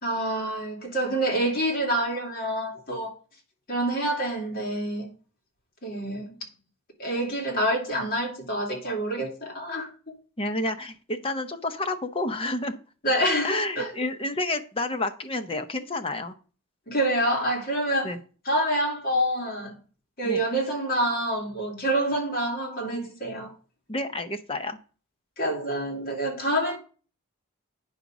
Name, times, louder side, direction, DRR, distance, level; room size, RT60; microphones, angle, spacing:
voice 1, 0.0-3.1 3.7-5.1 5.8-6.4 7.0-9.9 13.0-13.9 16.9-18.1 18.4-19.8 20.2-23.5 25.4-26.8, right 1 dB, 45° left, 2.8 m, -27 dB
voice 2, 10.4-12.8 13.4-16.3 18.0-18.2 20.2-20.4 23.9-24.8, left 2 dB, 25° left, 0.8 m, -30 dB
9.1 x 5.1 x 6.1 m
head